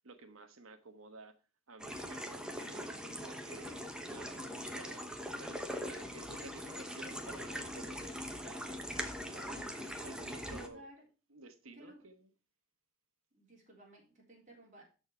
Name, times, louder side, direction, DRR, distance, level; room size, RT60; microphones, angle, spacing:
voice 1, 0.0-1.3 1.7-3.8 4.1-10.9 11.3-12.3, right 3 dB, 85° right, 1.3 m, -53 dB
sound 1, 1.8-10.7, equal, 5° right, 0.9 m, -42 dB
voice 2, 10.3-11.0 11.8-12.1 13.3-14.8, right 1 dB, 35° right, 3.5 m, -56 dB
12.5 x 4.5 x 4.5 m
head